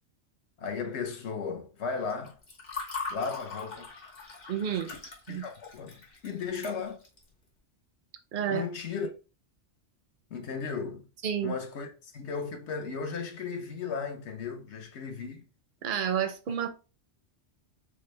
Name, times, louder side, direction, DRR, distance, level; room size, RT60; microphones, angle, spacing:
voice 1, 0.6-2.4 3.1-3.9 4.7-5.0 5.3-7.0 8.5-9.1 10.3-11.1 11.4-15.4, left 5 dB, 70° left, 1.1 m, -35 dB
Water / Fill (with liquid), 2.1-7.2, left 4 dB, 50° left, 1.4 m, -41 dB
voice 2, 4.5-4.9 5.3-5.4 8.3-8.7 11.2-11.5 15.8-16.7, right 8 dB, 60° right, 0.6 m, -30 dB
4.7 x 2.1 x 3.0 m
omnidirectional pair, 1.2 m